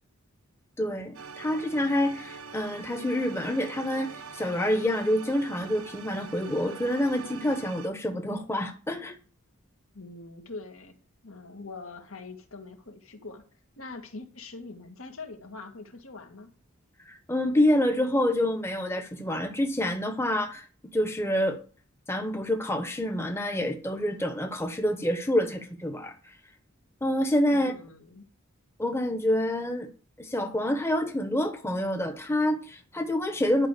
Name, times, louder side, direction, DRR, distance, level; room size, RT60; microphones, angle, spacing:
voice 1, 0.8-9.2 17.1-20.7 20.9-21.6 22.1-26.1 27.0-27.7 28.8-29.9 30.2-33.7, left 1 dB, 10° left, 1.0 m, -27 dB
sound 1, 1.1-7.9, right 5 dB, 80° right, 1.2 m, -43 dB
voice 2, 9.9-10.9 11.2-13.4 13.8-16.5 27.5-28.2, left 3 dB, 80° left, 2.0 m, -43 dB
11.0 x 5.1 x 6.6 m
head